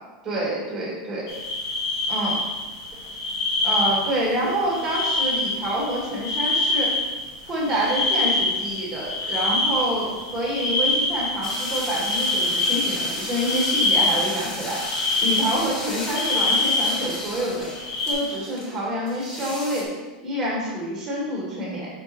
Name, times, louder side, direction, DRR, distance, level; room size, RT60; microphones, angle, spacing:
voice 1, 0.2-1.3 2.1-2.4 3.6-6.9 7.5-14.8 15.2-17.7 18.1-19.9 20.2-21.9, right 1 dB, 10° right, -5 dB, 1.9 m, -27 dB
sound 1, 1.3-15.7 16.0-17.1 17.7-18.1, left 2 dB, 65° left, 1.8 m, -25 dB
sound 2, 11.4-19.8, left 1 dB, 15° left, 0.9 m, -35 dB
5.3 x 5.2 x 4.4 m, 1.2 s
supercardioid pair, 175°, 4 cm